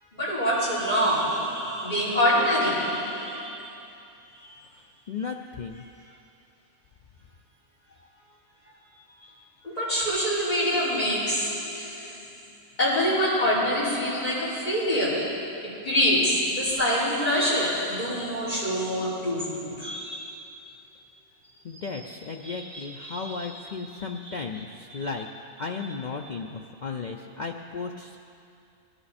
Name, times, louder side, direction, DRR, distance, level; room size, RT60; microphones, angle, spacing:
voice 1, 0.1-3.8 4.4-4.5 9.6-12.3 12.8-20.3 22.4-23.5 23.9-24.3 24.9-25.0, equal, 30° left, -8 dB, 3.9 m, -26 dB
voice 2, 5.1-5.8 21.6-25.3 25.6-28.2, left 4 dB, 85° left, 2 dB, 0.4 m, -35 dB
19.0 x 11.0 x 4.2 m, 2.5 s
omnidirectional pair, 1.5 m